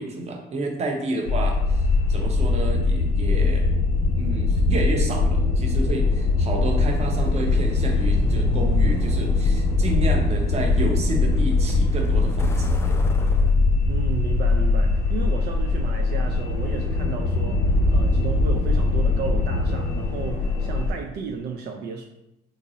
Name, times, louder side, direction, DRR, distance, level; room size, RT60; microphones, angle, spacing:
voice 1, 0.0-1.8 2.1-3.6 4.2-12.8, right 2 dB, 40° right, 2 dB, 0.7 m, -30 dB
sound 1, 1.3-20.9, left 3 dB, 85° left, 0.8 m, -21 dB
Truck, 6.7-15.5, left 2 dB, 15° left, 0.3 m, -38 dB
voice 2, 13.9-22.1, right 5 dB, 75° right, 2 dB, 0.4 m, -33 dB
3.9 x 2.6 x 2.7 m, 0.88 s
cardioid pair, 110°, 17 cm